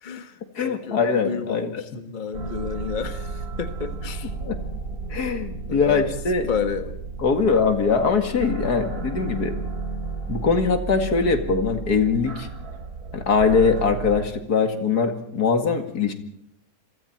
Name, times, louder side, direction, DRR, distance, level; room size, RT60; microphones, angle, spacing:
voice 1, 0.0-4.3 5.7-6.1 6.5-6.9, left 6 dB, 30° left, 9 dB, 1.5 m, -31 dB
voice 2, 0.6-1.8 4.4-4.6 5.1-6.5 7.2-9.5 10.3-12.5 13.1-16.1, left 5 dB, 75° left, 7 dB, 2.6 m, -22 dB
sound 1, 2.3-14.3, right 4 dB, 70° right, 3.2 m, -33 dB
28.5 x 23.5 x 4.5 m, 0.72 s
omnidirectional pair, 1.7 m